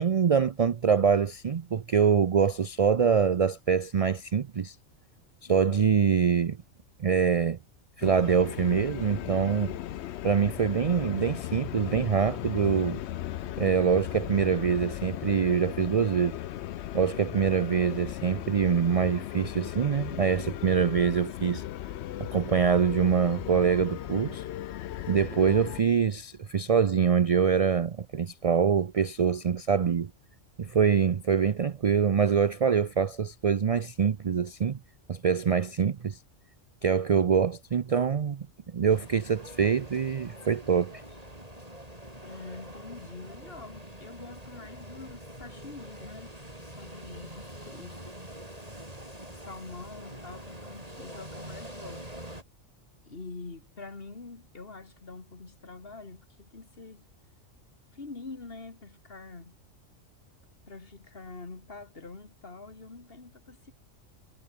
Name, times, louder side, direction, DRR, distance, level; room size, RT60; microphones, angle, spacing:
voice 1, 0.0-4.8 5.5-6.6 7.0-7.6 8.0-9.8 10.2-13.0 13.6-16.4 16.9-21.6 22.2-24.5 25.1-30.1 30.6-34.8 35.1-36.2 36.8-38.5 38.7-41.0, right 7 dB, 55° right, 0.4 m, -25 dB
voice 2, 5.5-6.0 42.2-48.1 49.3-52.1 53.0-57.1 57.9-59.6 60.7-63.7, left 3 dB, 50° left, 2.5 m, -45 dB
sound 1, 8.0-25.8, left 12 dB, 65° left, 0.8 m, -37 dB
sound 2, 38.9-52.4, right 1 dB, 30° right, 7.7 m, -45 dB
omnidirectional pair, 1.3 m